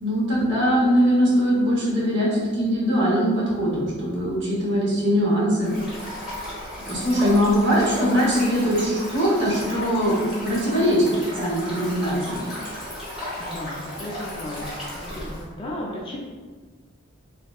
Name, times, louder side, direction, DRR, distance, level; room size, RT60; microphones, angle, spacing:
voice 1, 0.0-5.7 6.9-12.4, equal, 55° right, -6 dB, 0.9 m, -21 dB
Stream, 5.6-15.4, left 1 dB, 5° right, 0.9 m, -34 dB
voice 2, 13.4-14.7 14.9-16.2, left 1 dB, 25° left, -3 dB, 0.3 m, -34 dB
3.3 x 2.7 x 2.3 m, 1.5 s
head